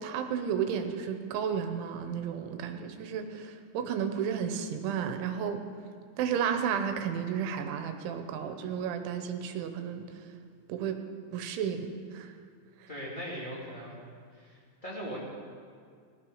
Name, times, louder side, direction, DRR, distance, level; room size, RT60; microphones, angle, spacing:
voice 1, 0.0-5.6 6.2-10.1 10.7-11.0 11.3-12.3, right 7 dB, 85° right, 6 dB, 3.4 m, -32 dB
voice 2, 12.9-14.0 14.3-15.2, equal, 20° left, -5 dB, 1.4 m, -40 dB
17.5 x 12.5 x 5.6 m, 2.2 s
omnidirectional pair, 5.3 m